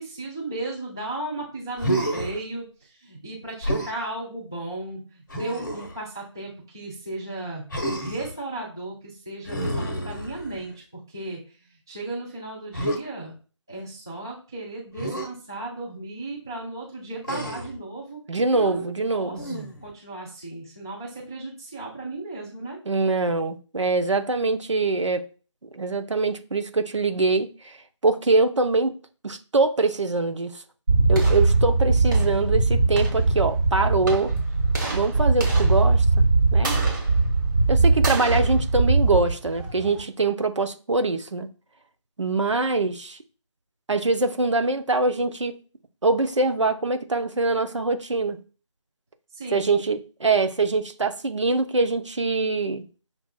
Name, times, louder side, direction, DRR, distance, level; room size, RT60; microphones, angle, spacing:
voice 1, 0.0-7.6 8.0-10.7 11.1-11.4 11.9-13.3 13.7-18.2 18.5-22.8 49.4-49.7, right 2 dB, 5° right, 0.4 m, -35 dB
Human voice, 1.8-2.4 3.6-4.0 5.3-6.0 7.7-8.4 9.5-10.7 12.7-13.0 15.0-15.3 17.2-17.8 19.4-19.9, right 1 dB, 40° left, 0.7 m, -29 dB
voice 2, 18.3-19.4 22.9-25.2 25.6-27.8 28.0-28.9 29.2-30.6 31.1-34.3 34.9-36.2 36.5-36.8 37.7-41.5 42.2-43.2 43.9-45.5 46.0-48.4 49.5-52.9, right 3 dB, 70° right, 0.6 m, -24 dB
sound 1, 30.9-40.0, right 3 dB, 40° right, 1.3 m, -21 dB
5.9 x 2.4 x 2.2 m
figure-of-eight pair, 155°, 16 cm